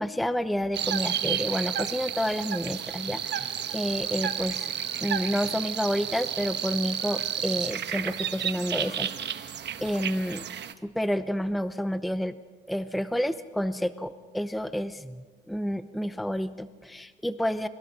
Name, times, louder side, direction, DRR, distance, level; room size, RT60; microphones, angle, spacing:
voice 1, 0.0-4.7 5.0-9.5 9.8-10.5 10.8-12.4 12.7-17.7, equal, ahead, 12 dB, 0.7 m, -30 dB
sound 1, 0.7-10.7, right 9 dB, 60° right, 1.2 m, -31 dB
30.0 x 23.5 x 4.2 m, 1.4 s
cardioid pair, 90°, 20 cm